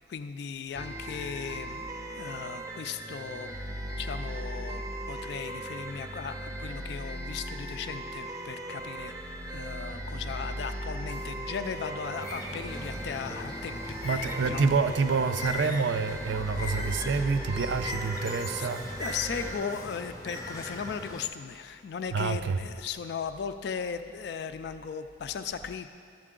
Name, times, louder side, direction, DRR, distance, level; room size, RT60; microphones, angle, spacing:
voice 1, 0.1-1.9 2.2-3.5 4.0-4.8 5.1-14.7 18.4-18.7 19.0-25.9, left 6 dB, 60° left, 9 dB, 0.3 m, -37 dB
sound 1, 0.7-19.5, right 1 dB, 15° right, 0.5 m, -38 dB
Bird, 12.2-21.3, left 1 dB, 20° left, 0.7 m, -39 dB
voice 2, 14.0-19.0 22.1-22.6, right 4 dB, 75° right, 10 dB, 0.4 m, -28 dB
11.5 x 7.5 x 3.7 m, 2.3 s
head